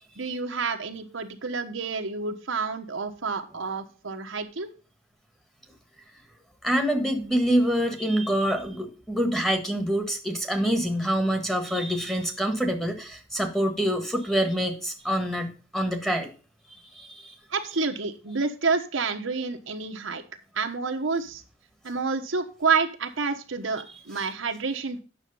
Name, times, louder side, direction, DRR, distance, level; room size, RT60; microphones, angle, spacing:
voice 1, 0.2-4.7 17.5-20.2 20.5-21.4 21.8-25.0, right 4 dB, 75° right, 4 dB, 1.2 m, -29 dB
voice 2, 6.6-16.3 16.9-17.4 24.2-24.3, equal, ahead, 3 dB, 1.4 m, -26 dB
9.2 x 6.3 x 5.5 m, 0.36 s
head